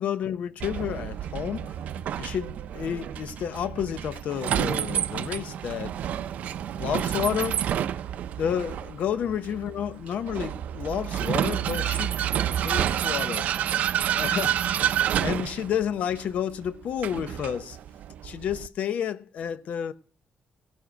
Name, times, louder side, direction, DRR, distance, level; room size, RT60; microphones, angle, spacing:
voice 1, 0.0-1.7 2.2-5.9 6.8-7.6 8.4-12.2 12.4-13.5 14.1-14.9 15.2-17.8 18.2-19.9, left 9 dB, 65° left, 0.8 m, -30 dB
Vehicle, 0.6-18.7, right 10 dB, 70° right, 0.5 m, -29 dB
17.5 x 7.2 x 6.3 m
wide cardioid pair, 175°, 3 cm